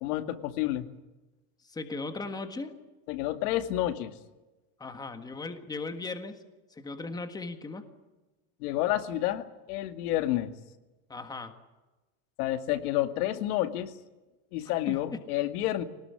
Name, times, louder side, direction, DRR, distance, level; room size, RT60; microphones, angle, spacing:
voice 1, 0.0-0.9 3.1-4.1 8.6-10.5 12.4-13.9 14.5-15.8, left 14 dB, 80° left, 8 dB, 2.3 m, -29 dB
voice 2, 1.6-2.7 4.8-6.4 6.7-7.9 11.1-11.5 14.9-15.2, left 3 dB, 10° left, 7 dB, 1.6 m, -37 dB
25.0 x 19.0 x 10.0 m, 1.1 s
cardioid pair, 175°, 44 cm